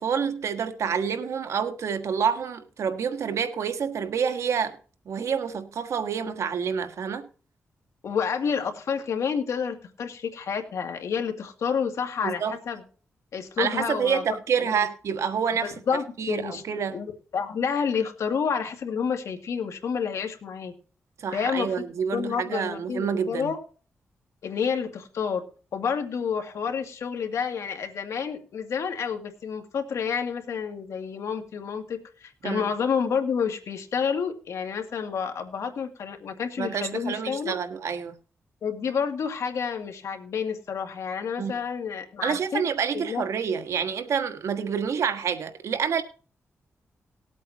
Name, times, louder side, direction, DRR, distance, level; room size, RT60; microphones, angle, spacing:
voice 1, 0.0-4.8 5.1-7.3 12.2-12.5 13.6-15.7 16.2-16.9 21.2-23.5 32.4-32.7 36.6-38.1 41.4-41.5 42.2-46.0, right 7 dB, 80° right, 1.5 m, -28 dB
voice 2, 8.0-12.8 13.3-14.9 15.6-16.6 16.9-20.7 21.3-21.8 22.1-23.6 24.4-25.4 25.7-37.6 38.6-42.6 42.9-43.2, left 6 dB, 80° left, 2.1 m, -29 dB
19.5 x 8.4 x 2.9 m
wide cardioid pair, 110°, 5 cm